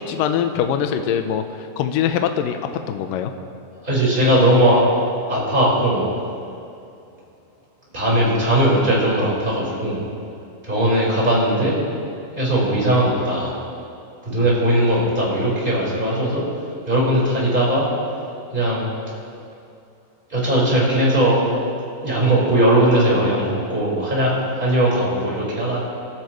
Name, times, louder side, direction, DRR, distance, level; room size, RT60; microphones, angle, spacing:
voice 1, 0.0-3.3, left 8 dB, 85° left, 7 dB, 1.9 m, -23 dB
voice 2, 3.8-4.8 5.3-6.0 7.9-10.0 10.6-11.7 12.3-13.5 14.2-16.4 16.9-17.8 18.5-18.9 20.3-21.4 22.0-25.8, right 1 dB, 10° right, -6 dB, 4.6 m, -19 dB
30.0 x 13.0 x 3.2 m, 2.5 s
omnidirectional pair, 5.0 m